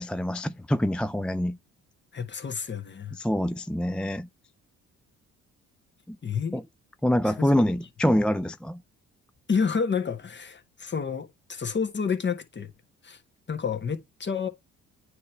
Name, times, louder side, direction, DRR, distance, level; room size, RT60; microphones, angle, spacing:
voice 1, 0.0-1.6 3.1-4.3 6.1-6.2 6.5-6.6 7.0-8.8, left 1 dB, 5° left, 0.4 m, -25 dB
voice 2, 2.1-3.1 6.2-6.6 7.2-7.6 9.5-12.7 13.0-13.2 13.5-14.5, left 6 dB, 35° left, 1.5 m, -29 dB
9.3 x 3.1 x 3.3 m
supercardioid pair, 70°, 31 cm